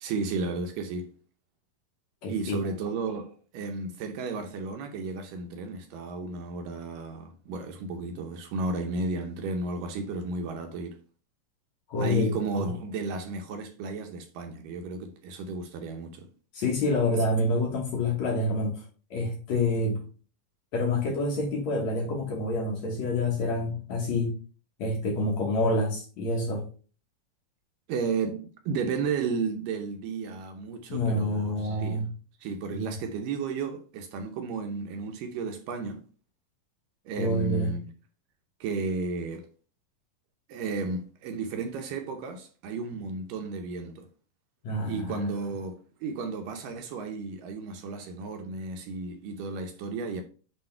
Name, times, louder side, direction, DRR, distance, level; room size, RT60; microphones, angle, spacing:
voice 1, 0.0-1.1 2.3-11.0 12.0-16.3 27.9-32.0 32.4-36.0 37.1-37.9 38.6-39.5 40.5-44.1 44.9-50.2, right 4 dB, 75° right, 2.1 m, -33 dB
voice 2, 2.2-2.6 11.9-12.4 16.5-18.8 19.1-20.0 20.7-24.4 24.8-26.6 30.9-32.1 32.7-32.9 37.2-37.7 44.6-45.3, left 2 dB, 60° left, 2.0 m, -27 dB
7.7 x 3.4 x 4.3 m
omnidirectional pair, 4.3 m